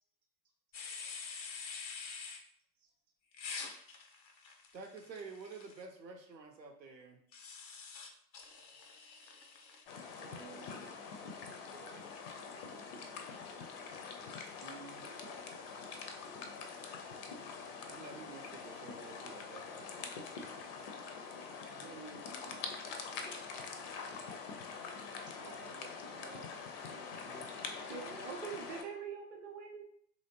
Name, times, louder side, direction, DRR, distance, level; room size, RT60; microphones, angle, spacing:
sound 1, 0.7-2.4 3.3-5.8 7.3-9.8, left 5 dB, 90° left, 0.6 m, -46 dB
voice 1, 4.7-7.2 14.6-15.1 17.9-20.1, right 4 dB, 90° right, 3 dB, 0.7 m, -50 dB
sound 2, 9.9-28.8, left 5 dB, 40° left, 0.4 m, -45 dB
voice 2, 10.0-12.1 15.0-16.8 21.7-22.9 25.3-28.3, right 5 dB, 55° right, 1 dB, 0.7 m, -57 dB
voice 3, 27.9-29.9, right 6 dB, 20° right, 1 dB, 0.4 m, -44 dB
2.9 x 2.7 x 2.7 m, 0.65 s
figure-of-eight pair, 85°, 50 cm